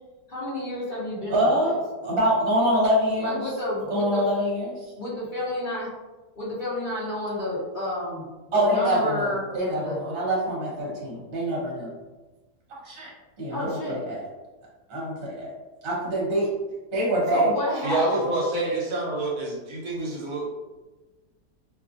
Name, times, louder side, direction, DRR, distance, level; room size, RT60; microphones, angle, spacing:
voice 1, 0.3-1.7 3.2-4.3 5.0-5.9 6.3-10.0 13.5-14.0 17.3-18.2, left 1 dB, 50° left, -7 dB, 0.6 m, -30 dB
voice 2, 1.3-3.4 3.9-4.9 8.5-11.9 12.8-13.1 13.4-14.2 14.9-15.5 15.8-16.5 16.9-17.5, equal, 45° right, -5 dB, 1.0 m, -25 dB
voice 3, 17.8-20.5, right 2 dB, 65° right, -3 dB, 1.1 m, -27 dB
2.7 x 2.5 x 2.4 m, 1.2 s
omnidirectional pair, 1.8 m